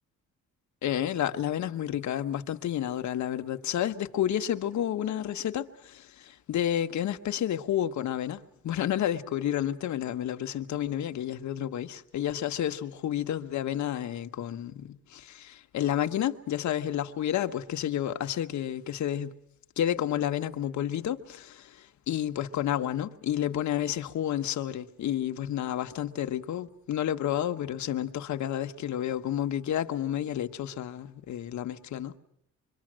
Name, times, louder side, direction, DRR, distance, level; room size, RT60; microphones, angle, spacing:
voice 1, 0.8-19.3 19.8-32.2, left 11 dB, 70° left, 1.4 m, -30 dB
25.5 x 24.0 x 7.6 m
cardioid pair, 90°, 30 cm